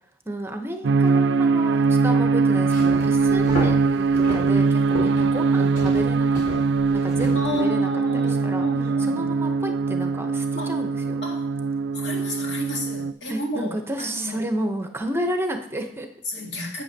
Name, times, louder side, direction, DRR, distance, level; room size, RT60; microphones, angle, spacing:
voice 1, 0.3-6.4 6.9-8.7 9.0-11.2 13.3-16.1, right 1 dB, 15° right, 5 dB, 0.8 m, -31 dB
sound 1, 0.8-13.1, right 4 dB, 75° right, 0.3 m, -21 dB
sound 2, 2.5-7.7, right 1 dB, 50° left, 4.1 m, -33 dB
voice 2, 7.3-9.3 10.6-10.8 11.2-11.5 11.9-14.4 16.3-16.8, left 1 dB, 85° left, -1 dB, 2.2 m, -33 dB
11.0 x 8.0 x 2.8 m, 0.68 s
head